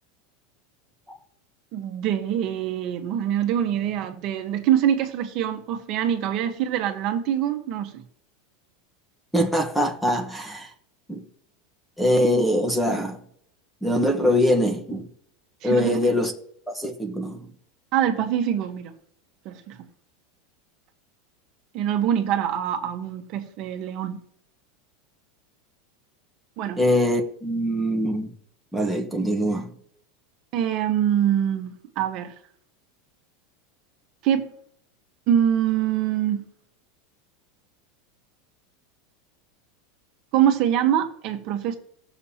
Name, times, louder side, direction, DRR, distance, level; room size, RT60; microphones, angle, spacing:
voice 1, 1.7-8.0 15.6-16.2 17.9-18.9 19.4-19.8 21.7-24.2 26.6-26.8 30.5-32.3 34.2-34.5 35.3-36.4 40.3-41.8, right 10 dB, 40° right, 1.2 m, -24 dB
voice 2, 9.3-10.7 11.1-11.2 12.0-13.2 13.8-15.1 15.6-16.3 16.7-17.4 26.8-28.3 28.7-29.7, equal, ahead, 1.2 m, -23 dB
17.0 x 6.9 x 2.9 m
supercardioid pair, 160°, 0 cm